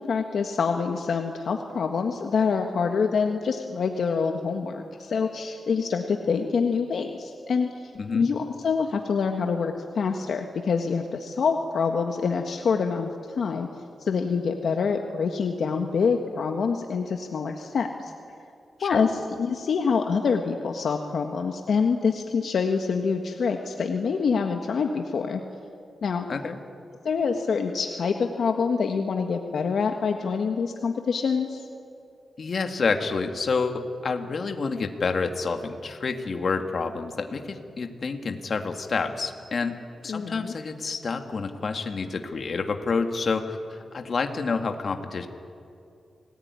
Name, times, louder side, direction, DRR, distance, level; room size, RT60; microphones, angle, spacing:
voice 1, 0.1-7.7 8.1-13.1 13.4-13.7 14.0-18.1 18.8-25.4 26.0-26.3 27.0-31.6 40.1-40.5, left 5 dB, 70° left, 4 dB, 1.6 m, -26 dB
voice 2, 32.4-45.3, left 4 dB, 50° left, 5 dB, 2.2 m, -28 dB
28.5 x 19.0 x 9.7 m, 2.5 s
wide cardioid pair, 105°, 0 cm